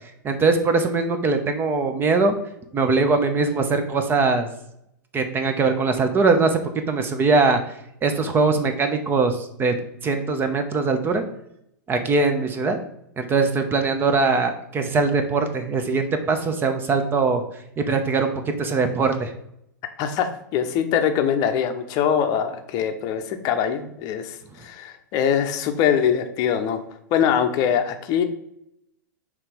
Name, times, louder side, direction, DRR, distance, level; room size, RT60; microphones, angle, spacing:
voice 1, 0.2-2.3 2.7-4.5 5.1-6.6 6.9-7.6 8.0-9.8 10.0-11.2 11.9-12.8 13.2-17.4 17.8-19.3, right 4 dB, 20° right, 7 dB, 0.8 m, -21 dB
voice 2, 20.0-26.8 27.1-28.2, left 8 dB, 40° left, 7 dB, 0.7 m, -23 dB
5.7 x 3.3 x 5.1 m, 0.76 s
figure-of-eight pair, 100°, 10 cm